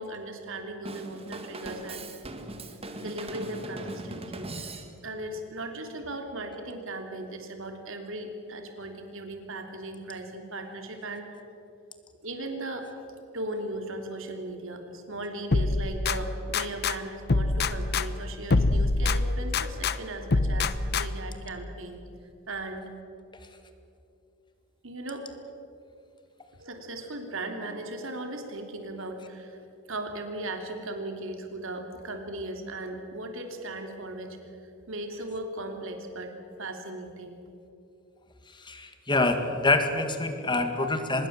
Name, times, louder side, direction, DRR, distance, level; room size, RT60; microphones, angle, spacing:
voice 1, 0.0-2.0 3.0-11.3 12.2-12.9 13.3-22.0 22.5-22.9 24.8-25.3 26.6-29.6 29.9-34.4 34.9-36.3 36.6-37.4, right 2 dB, 65° right, 5 dB, 3.3 m, -37 dB
Drum kit / Drum, 0.9-5.2, right 2 dB, 30° right, 2.0 m, -39 dB
sound 1, 15.5-17.0 17.3-20.0 20.3-21.3, left 3 dB, 50° left, 0.9 m, -26 dB
voice 2, 38.5-41.3, left 2 dB, 20° left, 7 dB, 2.1 m, -26 dB
25.0 x 21.0 x 7.5 m, 2.7 s
head